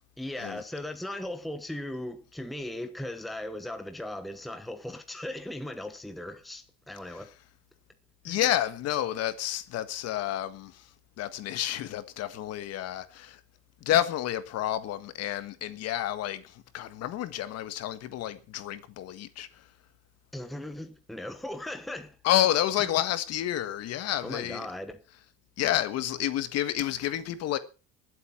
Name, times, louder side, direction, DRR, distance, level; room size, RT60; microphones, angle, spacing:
voice 1, 0.2-7.3 8.3-8.4 20.3-22.2 22.8-22.9 24.2-25.0, left 1 dB, ahead, 1.0 m, -38 dB
voice 2, 8.2-10.9 11.2-13.4 13.8-19.6 22.2-24.6 25.6-27.6, left 12 dB, 50° left, 1.6 m, -29 dB
20.5 x 8.0 x 5.8 m
cardioid pair, 175°, 33 cm